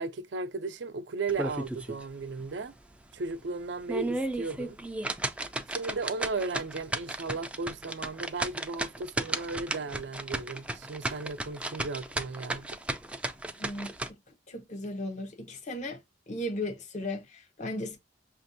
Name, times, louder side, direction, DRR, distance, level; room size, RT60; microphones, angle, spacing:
voice 1, 0.0-2.7 3.1-4.8 5.7-12.7, right 3 dB, 70° right, 0.5 m, -35 dB
sound 1, 1.3-2.0 2.4-2.5 3.0-3.1 3.7-14.1, right 1 dB, 5° right, 0.4 m, -34 dB
voice 2, 13.6-13.9 14.5-16.0 16.3-18.0, left 1 dB, 40° left, 0.7 m, -36 dB
5.9 x 2.5 x 2.5 m
head